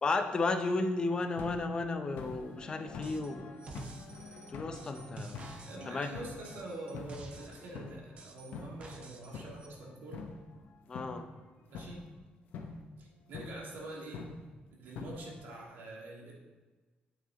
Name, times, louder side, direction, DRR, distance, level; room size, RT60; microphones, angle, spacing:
voice 1, 0.0-3.4 4.5-5.4 5.9-6.1 10.9-11.2, left 3 dB, 25° left, 7 dB, 0.7 m, -33 dB
sound 1, 1.1-11.4 11.7-12.1 12.5-12.9 13.3-13.7 14.1-14.5 15.0-15.6, left 4 dB, 80° left, 1.2 m, -46 dB
sound 2, 3.0-3.3 3.6-7.7 8.2-9.3 9.6-9.7, right 3 dB, 35° right, 0.8 m, -49 dB
voice 2, 5.6-10.2 11.7-12.1 13.0-14.2 14.8-16.3, right 2 dB, 80° right, -2 dB, 2.5 m, -45 dB
9.4 x 8.2 x 4.0 m, 1.3 s
cardioid pair, 170°, 3 cm